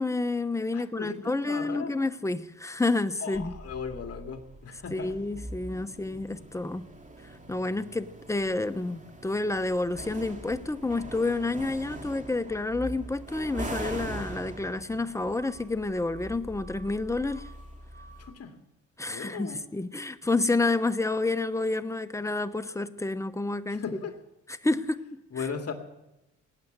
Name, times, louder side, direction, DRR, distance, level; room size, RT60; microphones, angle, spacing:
voice 1, 0.0-3.5 4.9-6.9 7.5-17.5 19.0-23.8 24.5-25.4, left 2 dB, 10° left, 12 dB, 0.9 m, -29 dB
voice 2, 0.7-1.9 3.2-5.2 18.2-18.5 19.1-19.6 23.7-24.1 25.3-25.7, left 6 dB, 50° left, 4 dB, 2.3 m, -37 dB
sound 1, 3.3-18.3, right 1 dB, 25° right, 2.6 m, -42 dB
18.5 x 8.6 x 7.9 m, 0.93 s
cardioid pair, 70°, 31 cm